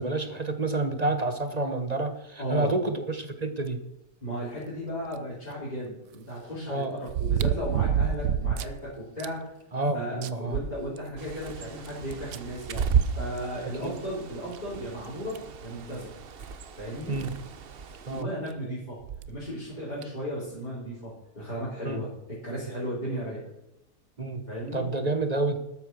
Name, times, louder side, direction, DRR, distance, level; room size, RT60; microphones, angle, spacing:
voice 1, 0.0-3.8 6.7-6.9 9.7-10.6 13.6-14.0 17.1-17.3 18.1-18.3 21.8-22.0 24.2-24.4 24.7-25.6, right 2 dB, 30° right, 9 dB, 1.1 m, -29 dB
voice 2, 2.4-2.8 4.2-9.4 9.9-16.1 16.8-17.1 18.1-19.0 19.3-23.4 24.5-24.9, equal, 25° left, -9 dB, 4.5 m, -35 dB
sound 1, 5.1-5.2 7.1-8.8 9.2-9.3 9.8-9.9 10.2-11.3 12.3-12.4 13.9-14.0 14.5-14.6 15.3-15.6 16.9-17.0 17.2-17.3 19.0-19.3 20.0-20.1, right 8 dB, 70° right, 1.1 m, -28 dB
Bird, 11.2-18.2, right 7 dB, 45° right, 0.8 m, -33 dB
13.0 x 8.7 x 6.4 m, 0.87 s
omnidirectional pair, 1.7 m